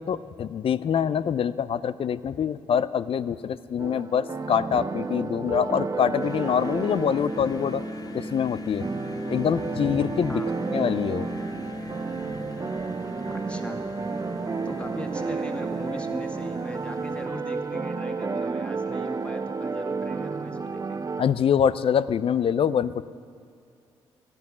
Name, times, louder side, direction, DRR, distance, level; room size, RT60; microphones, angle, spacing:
voice 1, 0.0-7.8 8.1-8.8 9.3-10.4 10.7-11.3 21.2-23.0, left 8 dB, 55° left, 16 dB, 0.4 m, -25 dB
sound 1, 3.8-21.2, right 4 dB, 30° right, 0.6 m, -32 dB
sound 2, 6.2-17.3, left 1 dB, 35° left, 1.2 m, -39 dB
voice 2, 13.3-13.8 14.7-21.1, left 1 dB, 10° left, 4 dB, 1.7 m, -39 dB
14.0 x 10.5 x 6.1 m, 2.3 s
hypercardioid pair, 45°, 11 cm